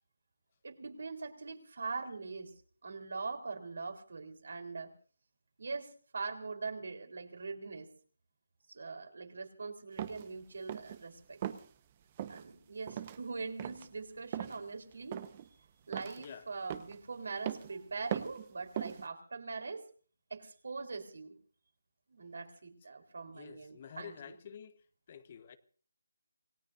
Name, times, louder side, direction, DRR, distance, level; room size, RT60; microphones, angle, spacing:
voice 1, 0.6-2.5 2.8-4.9 5.6-7.9 8.7-11.4 12.3-15.2 15.9-19.8 20.3-21.3 22.1-24.4, right 4 dB, 65° right, 4.0 m, -42 dB
sound 1, 10.0-10.3 10.7-11.0 11.4-11.7 12.2-12.4 12.9-13.2 13.6-13.9 14.3-14.6 15.1-15.5 15.9-16.3 16.7-17.0 17.5-17.7 18.1-18.4 18.8-19.0, right 10 dB, 30° right, 1.1 m, -39 dB
voice 2, 23.3-24.8 25.1-25.6, left 8 dB, 35° left, 1.2 m, -49 dB
27.5 x 18.0 x 2.7 m
figure-of-eight pair, 160°, 0 cm